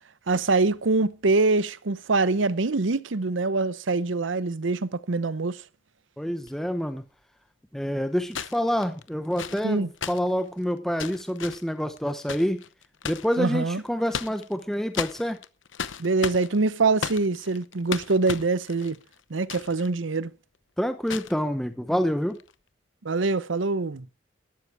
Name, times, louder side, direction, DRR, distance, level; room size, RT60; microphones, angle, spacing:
voice 1, 0.3-5.6 9.6-9.9 13.4-13.8 16.0-19.0 19.3-20.3 23.0-24.1, right 3 dB, 85° right, 0.8 m, -24 dB
voice 2, 6.2-7.0 7.7-12.6 13.0-15.4 20.8-22.4, equal, ahead, 0.8 m, -27 dB
sound 1, 6.4-6.5 8.3-13.4 13.9-14.6 14.9-19.9 20.2-20.3 21.1-21.4 22.3-22.5, left 7 dB, 80° left, 0.9 m, -35 dB
12.5 x 12.5 x 4.7 m
head